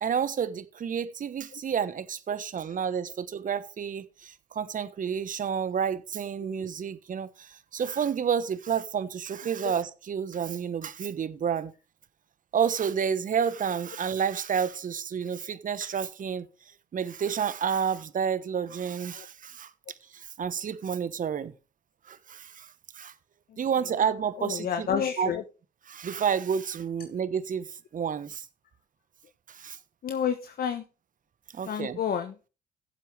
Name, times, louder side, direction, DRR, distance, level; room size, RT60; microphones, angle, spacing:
voice 1, 0.0-11.7 12.5-16.5 16.9-19.7 20.1-21.5 22.1-22.7 22.9-23.1 23.6-25.3 25.9-27.7 27.9-28.4 29.5-29.8 31.5-32.0, right 7 dB, 40° right, 1.2 m, -30 dB
voice 2, 24.4-25.4 30.0-30.8 31.7-32.3, left 8 dB, 50° left, 1.1 m, -29 dB
15.5 x 7.5 x 3.4 m
hypercardioid pair, 55°, 20 cm